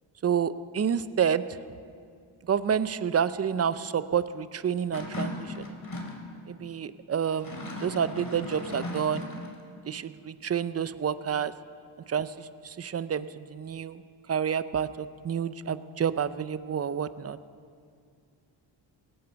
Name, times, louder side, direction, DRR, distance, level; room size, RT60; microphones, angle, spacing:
voice 1, 0.2-1.6 2.4-5.8 6.5-9.3 9.9-11.5 12.1-14.0 14.3-17.4, right 8 dB, 30° right, 14 dB, 0.5 m, -29 dB
sound 1, 4.9-6.2 7.3-9.6, left 2 dB, 40° left, 2.7 m, -37 dB
17.5 x 9.5 x 6.9 m, 2.2 s
cardioid pair, 85°, 50 cm